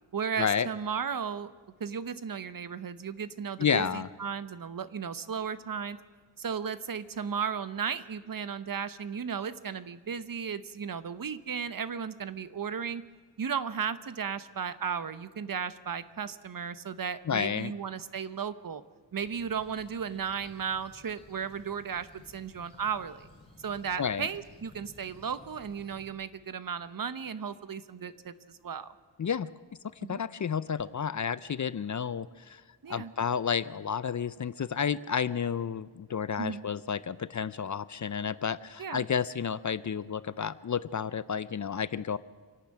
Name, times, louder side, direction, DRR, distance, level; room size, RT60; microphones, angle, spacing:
voice 1, 0.1-1.5 1.8-6.0 6.4-13.0 13.4-18.8 19.1-23.3 23.6-28.9 30.0-30.2 32.8-33.1 36.4-36.7 38.8-39.0, right 7 dB, 50° right, 14 dB, 0.9 m, -35 dB
voice 2, 3.6-4.1 17.3-17.7 24.0-24.3 29.2-29.5 30.1-32.6 32.9-42.2, left 7 dB, 45° left, 17 dB, 0.5 m, -31 dB
sound 1, 19.1-26.1, left 1 dB, 15° left, 4.7 m, -56 dB
26.0 x 12.0 x 8.8 m, 1.5 s
wide cardioid pair, 170°, 44 cm